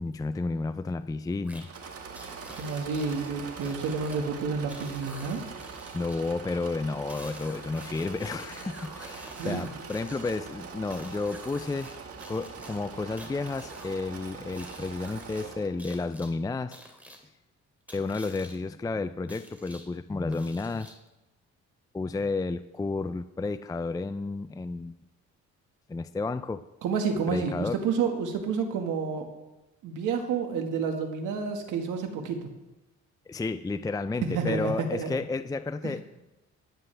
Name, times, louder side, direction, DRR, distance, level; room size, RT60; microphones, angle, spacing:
voice 1, 0.0-1.7 5.9-11.9 12.3-16.8 17.9-20.9 21.9-24.9 25.9-26.6 27.3-27.8 33.3-36.0, left 3 dB, 10° left, 12 dB, 0.4 m, -31 dB
sound 1, 1.4-1.6 2.2-4.2 4.7-6.2 7.1-10.4 10.9-12.0 12.2-13.9 14.5-15.4 15.8-16.3 16.7-17.2 17.9-18.6 19.3-19.8 20.3-21.1, equal, 5° right, 2.7 m, -49 dB
Engine / Mechanisms, 1.5-15.8, right 5 dB, 50° right, 1.8 m, -43 dB
voice 2, 2.6-5.4 9.3-9.7 26.8-29.3 29.8-32.5 34.3-35.2 35.8-36.0, right 5 dB, 90° right, 4 dB, 1.8 m, -30 dB
26.0 x 9.5 x 3.4 m, 0.99 s
cardioid pair, 90°, 30 cm